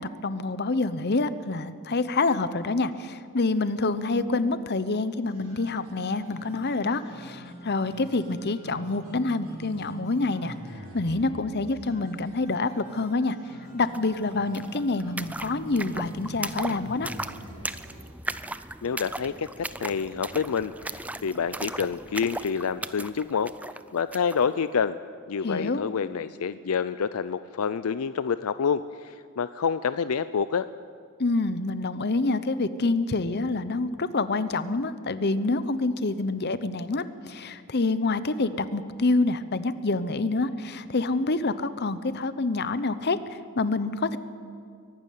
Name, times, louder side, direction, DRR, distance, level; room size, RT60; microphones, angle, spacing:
voice 1, 0.0-10.5 10.9-13.4 13.7-17.1 25.4-25.8 31.2-44.2, left 3 dB, 50° left, 13 dB, 0.8 m, -27 dB
sound 1, 5.2-18.1, right 1 dB, 90° right, 6.1 m, -45 dB
sound 2, 13.9-14.0 14.2-24.4, right 2 dB, 5° right, 0.4 m, -37 dB
voice 2, 18.8-23.5 23.9-25.0 25.3-30.7, left 6 dB, 75° left, 14 dB, 0.5 m, -28 dB
23.0 x 12.0 x 9.3 m, 2.2 s
head